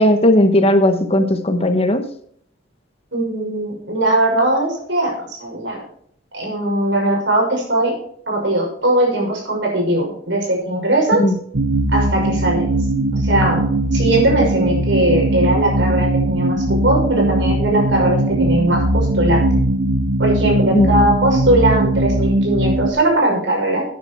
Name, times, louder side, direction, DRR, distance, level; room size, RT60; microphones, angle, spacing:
voice 1, 0.0-2.1 11.1-11.3 20.7-20.9, left 1 dB, 30° left, 8 dB, 1.1 m, -15 dB
voice 2, 3.1-5.8 6.3-7.9 8.3-11.2 11.9-12.7 13.2-13.6 13.9-19.5 20.2-23.8, right 1 dB, 65° right, 0 dB, 6.0 m, -19 dB
sound 1, 11.5-22.9, right 1 dB, 85° right, 1.0 m, -19 dB
13.0 x 9.6 x 4.6 m, 0.63 s
head